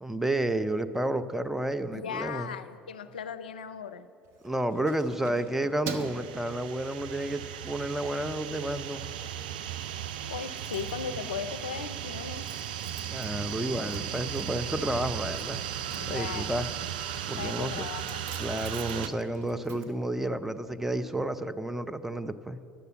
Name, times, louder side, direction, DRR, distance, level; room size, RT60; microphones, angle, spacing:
voice 1, 0.0-2.5 4.4-9.0 13.1-15.6 16.1-16.7 17.3-17.9 18.4-22.6, right 1 dB, 5° right, 10 dB, 0.5 m, -31 dB
voice 2, 1.9-4.1 10.2-12.5 16.0-16.5 17.4-18.2, left 7 dB, 80° left, 11 dB, 0.4 m, -37 dB
Keys jangling, 4.3-7.3 7.8-8.0 8.4-9.1 9.3-9.4 9.7-9.8 10.0-20.8 21.1-21.2, right 5 dB, 60° right, 0.8 m, -46 dB
sound 1, 6.0-19.1, right 10 dB, 75° right, 0.4 m, -36 dB
10.0 x 6.7 x 8.3 m, 2.9 s
figure-of-eight pair, 65°, 5 cm